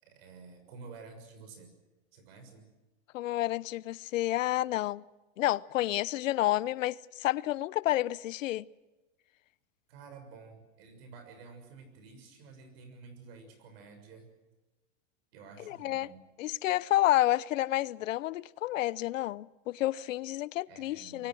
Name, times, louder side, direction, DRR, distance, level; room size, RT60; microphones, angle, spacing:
voice 1, 0.0-1.7 2.1-2.7 9.9-14.3 15.3-16.2 20.7-21.3, right 4 dB, 50° right, 6.7 m, -51 dB
voice 2, 3.1-5.0 5.4-8.7 15.7-16.1 16.4-21.3, left 15 dB, 75° left, 0.8 m, -30 dB
27.0 x 23.0 x 6.3 m
supercardioid pair, 170°, 39 cm